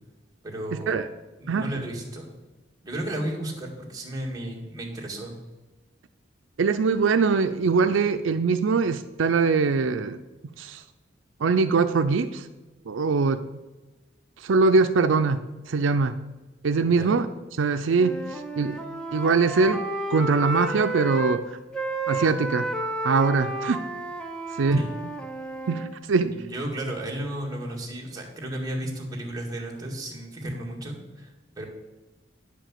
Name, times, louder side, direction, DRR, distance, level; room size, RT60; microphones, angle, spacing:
voice 1, 0.4-1.0 1.4-2.3 2.8-5.3 16.8-17.2 24.7-24.9 26.2-31.7, right 1 dB, 20° right, -1 dB, 1.9 m, -33 dB
voice 2, 6.6-10.2 10.6-10.8 11.4-12.5 12.9-13.4 14.4-16.1 16.6-17.3 17.6-18.8 19.1-19.8 20.1-21.4 22.1-22.7 23.0-23.8 24.6-24.8 25.7-26.4, right 4 dB, 80° right, 9 dB, 0.5 m, -22 dB
Wind instrument woodwind instrument, 17.9-21.4 21.7-25.9, right 2 dB, 5° left, 0.8 m, -32 dB
9.9 x 5.1 x 7.5 m, 1.2 s
head